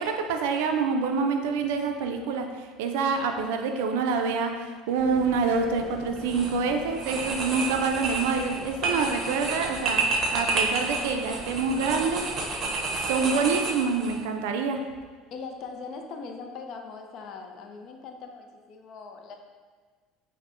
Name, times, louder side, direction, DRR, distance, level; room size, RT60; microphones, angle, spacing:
voice 1, 0.0-12.2 13.1-14.9, right 5 dB, 80° right, 5 dB, 0.3 m, -27 dB
sound 1, 5.0-13.0, equal, 30° left, 1.3 m, -45 dB
sound 2, 6.2-6.6 6.9-14.2, right 3 dB, 45° right, 0.6 m, -30 dB
voice 2, 15.3-19.4, left 4 dB, 55° left, 4 dB, 0.4 m, -40 dB
5.3 x 2.0 x 2.5 m, 1.4 s
hypercardioid pair, 85°, 0 cm